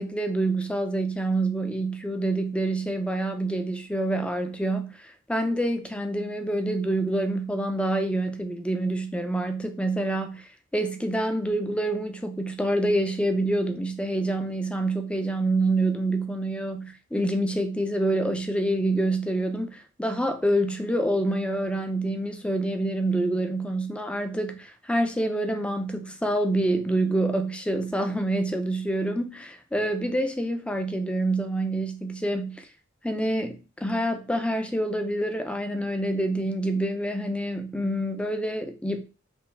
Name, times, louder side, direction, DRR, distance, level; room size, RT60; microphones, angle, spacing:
voice 1, 0.0-32.7 33.0-39.0, right 1 dB, 5° left, 0.4 m, -27 dB
5.3 x 2.7 x 3.4 m
head